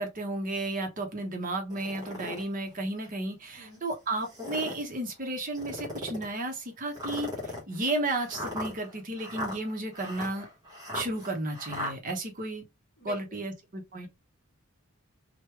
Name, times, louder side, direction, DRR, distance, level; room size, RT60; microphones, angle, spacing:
voice 1, 0.0-7.3 7.7-10.5 10.9-12.7 13.0-14.1, right 2 dB, 35° right, 0.8 m, -33 dB
sound 1, 1.7-2.4 3.0-3.1 4.2-4.9 5.5-6.3 6.9-11.9, left 1 dB, 15° right, 1.0 m, -37 dB
voice 2, 13.0-13.5, left 3 dB, 35° left, 1.1 m, -46 dB
3.1 x 2.2 x 3.3 m
head